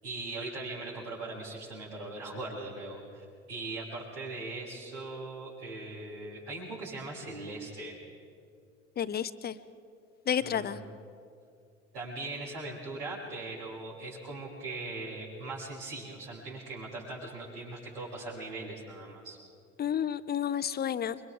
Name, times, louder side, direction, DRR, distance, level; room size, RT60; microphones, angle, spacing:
voice 1, 0.0-8.0 10.4-10.9 11.9-19.4, right 2 dB, 70° right, -11 dB, 6.1 m, -40 dB
voice 2, 9.0-9.6 10.3-10.8 19.8-21.2, left 9 dB, 30° left, 14 dB, 0.8 m, -31 dB
28.5 x 24.5 x 3.9 m, 2.4 s
figure-of-eight pair, 60°, 34 cm